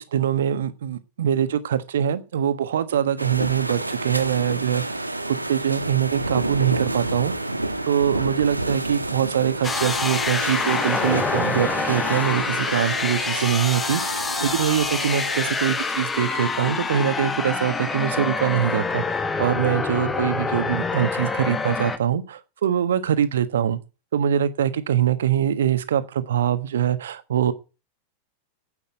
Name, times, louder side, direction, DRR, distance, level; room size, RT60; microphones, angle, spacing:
voice 1, 0.0-7.3 7.9-23.8 24.1-27.5, right 9 dB, 60° right, 1.3 m, -23 dB
sound 1, 3.2-15.5, right 2 dB, 85° right, 1.2 m, -30 dB
sound 2, 9.6-22.0, left 4 dB, 15° left, 1.4 m, -26 dB
11.0 x 8.7 x 7.9 m
figure-of-eight pair, 90°, 0 cm